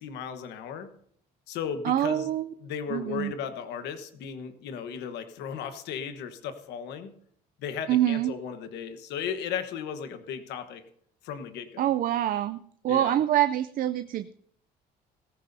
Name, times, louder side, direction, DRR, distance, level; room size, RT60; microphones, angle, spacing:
voice 1, 0.0-0.9 1.5-2.3 2.6-7.1 7.6-10.8 11.2-11.9 12.9-13.2, left 7 dB, 80° left, 9 dB, 1.2 m, -36 dB
voice 2, 1.8-2.5 2.9-3.3 7.9-8.3 11.8-14.3, right 12 dB, 55° right, 11 dB, 0.5 m, -25 dB
17.5 x 14.5 x 2.7 m, 0.68 s
cardioid pair, 110°, 17 cm